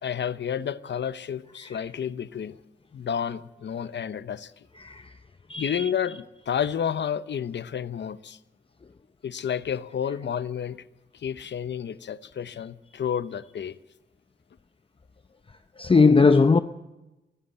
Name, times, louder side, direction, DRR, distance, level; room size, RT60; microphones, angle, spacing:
voice 1, 0.0-2.6 2.9-4.7 5.6-8.4 9.2-10.8 11.1-13.8, left 8 dB, 65° left, 0.8 m, -30 dB
voice 2, 4.8-5.2 5.5-5.9 15.8-16.6, left 4 dB, 30° left, 0.7 m, -19 dB
23.0 x 15.0 x 8.0 m
cardioid pair, 60°, 20 cm